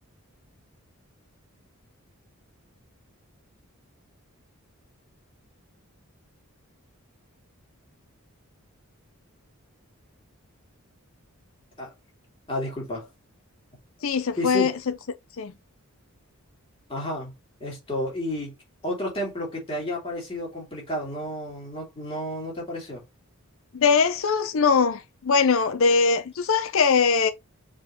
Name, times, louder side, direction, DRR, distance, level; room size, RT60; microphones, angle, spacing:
voice 1, 12.5-13.1 14.4-14.7 16.9-17.3 17.6-18.5 18.8-23.0, left 1 dB, 25° left, 2.4 m, -31 dB
voice 2, 14.0-14.7 15.4-15.5 23.7-27.3, left 5 dB, 65° left, 0.5 m, -21 dB
4.8 x 3.9 x 2.8 m
head